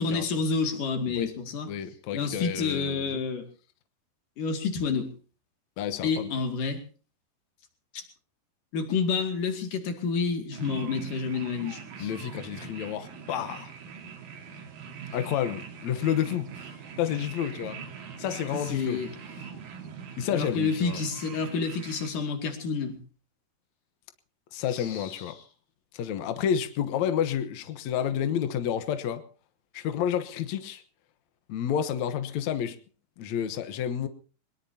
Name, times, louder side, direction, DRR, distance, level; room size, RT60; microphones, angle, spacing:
voice 1, 0.0-1.7 2.1-3.5 4.4-5.1 6.0-6.8 7.9-8.0 8.7-12.1 18.7-19.1 20.3-23.0 24.7-25.2, left 5 dB, 55° left, 5 dB, 3.6 m, -29 dB
voice 2, 1.7-3.2 5.8-6.3 12.0-13.7 15.1-17.8 18.2-19.0 20.2-21.0 24.5-25.4 25.9-29.2 29.7-30.8 31.5-32.8 33.2-34.1, left 9 dB, 75° left, 9 dB, 1.7 m, -30 dB
sound 1, 10.5-22.1, right 6 dB, 60° right, 3.9 m, -42 dB
22.0 x 21.0 x 2.9 m, 0.38 s
omnidirectional pair, 4.9 m